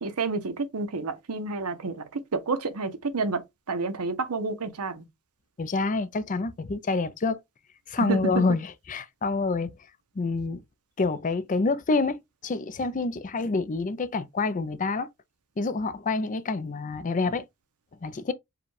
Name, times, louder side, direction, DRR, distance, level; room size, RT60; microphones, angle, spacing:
voice 1, 0.0-5.0 8.0-8.4, right 3 dB, 80° right, 0.8 m, -30 dB
voice 2, 5.6-7.4 7.9-9.7 10.2-10.6 11.0-15.1 15.6-17.4 18.0-18.3, left 3 dB, 35° left, 0.5 m, -27 dB
4.9 x 2.3 x 4.7 m
head